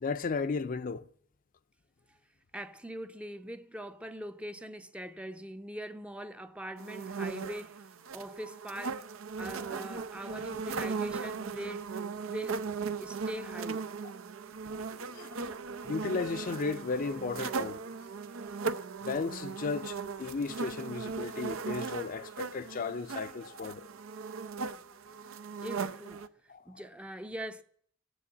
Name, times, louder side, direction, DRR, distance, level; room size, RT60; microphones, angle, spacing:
voice 1, 0.0-1.0 14.6-17.8 19.0-23.9 26.5-26.8, left 4 dB, 45° left, 0.5 m, -35 dB
voice 2, 2.5-9.1 9.4-11.9 12.2-12.6 13.0-13.9 25.6-26.3 26.7-27.6, equal, 5° right, 0.5 m, -42 dB
sound 1, 6.8-26.3, right 5 dB, 90° right, 0.6 m, -38 dB
17.0 x 7.0 x 8.5 m
head